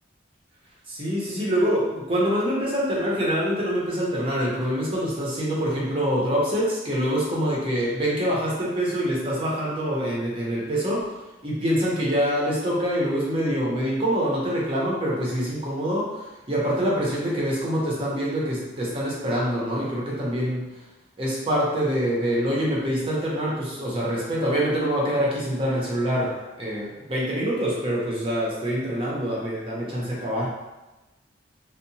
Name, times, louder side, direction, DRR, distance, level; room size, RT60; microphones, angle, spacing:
voice 1, 0.9-11.2 11.4-20.8 21.2-30.5, equal, 30° right, -5 dB, 0.6 m, -25 dB
2.7 x 2.0 x 2.7 m, 1.1 s
head